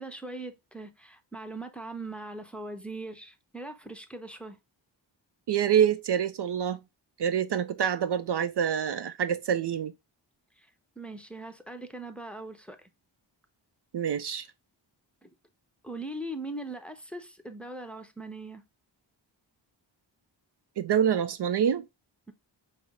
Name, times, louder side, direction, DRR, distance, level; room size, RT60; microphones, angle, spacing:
voice 1, 0.0-4.6 10.6-12.9 15.2-15.3 15.8-18.6, right 2 dB, 5° left, 0.7 m, -40 dB
voice 2, 5.5-6.8 7.2-9.9 13.9-14.5 20.8-21.8, right 8 dB, 60° right, 0.5 m, -26 dB
5.6 x 2.1 x 3.5 m
cardioid pair, 55°, 46 cm